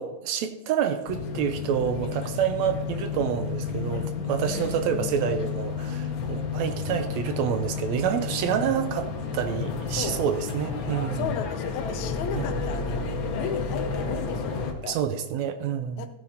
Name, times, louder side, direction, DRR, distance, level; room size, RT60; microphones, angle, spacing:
voice 1, 0.0-11.4 12.3-12.6 14.9-16.1, right 8 dB, 80° right, 8 dB, 1.9 m, -28 dB
sound 1, 1.1-14.7, left 5 dB, 60° left, 1.4 m, -31 dB
voice 2, 4.4-4.7 6.3-6.5 8.6-8.8 9.9-10.2 11.1-13.0 13.3-15.0 16.0-16.1, left 8 dB, 75° left, 7 dB, 2.0 m, -35 dB
15.0 x 8.8 x 2.9 m, 0.92 s
omnidirectional pair, 3.4 m